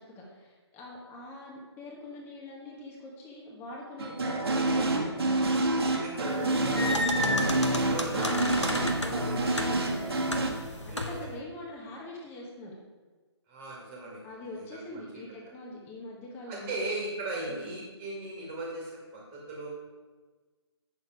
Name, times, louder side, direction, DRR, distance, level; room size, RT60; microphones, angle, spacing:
voice 1, 0.0-5.1 6.3-7.8 8.1-12.8 14.2-16.8 17.5-17.7, left 1 dB, 15° left, -3 dB, 1.4 m, -42 dB
sound 1, 4.0-10.5, right 2 dB, 60° right, 1.5 m, -28 dB
voice 2, 5.9-6.7 7.9-8.7 10.9-11.3 13.5-14.2 14.5-15.2 16.5-19.7, right 2 dB, 20° right, -2 dB, 2.0 m, -38 dB
sound 2, 6.3-11.3, left 1 dB, 90° left, 1.1 m, -33 dB
8.4 x 6.7 x 4.6 m, 1.3 s
figure-of-eight pair, 135°, 15 cm